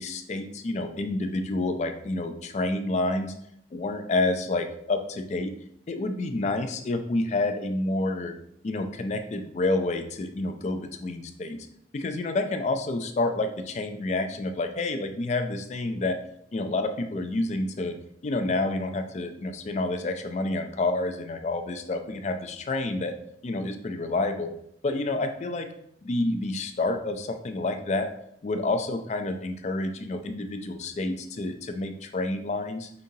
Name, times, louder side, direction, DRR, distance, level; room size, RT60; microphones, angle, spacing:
voice 1, 0.0-3.3 3.7-5.5 5.9-8.3 8.6-11.7 11.9-16.2 16.5-18.0 18.2-23.1 23.4-24.5 24.8-25.7 26.0-28.1 28.4-32.9, left 2 dB, 40° left, 7 dB, 0.3 m, -29 dB
5.0 x 2.7 x 2.7 m, 0.71 s
head